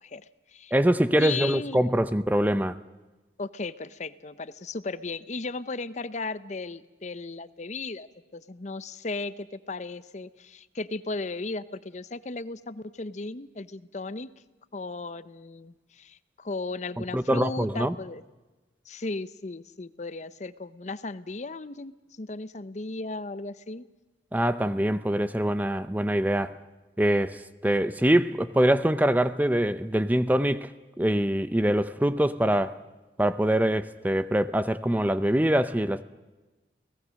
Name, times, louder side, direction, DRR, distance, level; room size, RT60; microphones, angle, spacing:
voice 1, 0.0-0.7 1.2-1.8 3.4-8.1 8.3-14.3 14.7-18.2 18.9-23.9, left 3 dB, 40° left, 0.7 m, -36 dB
voice 2, 0.7-2.8 17.1-17.9 24.3-26.5 27.0-30.7 31.0-32.8 33.2-36.0, right 1 dB, 10° right, 0.6 m, -24 dB
29.5 x 18.0 x 6.4 m
head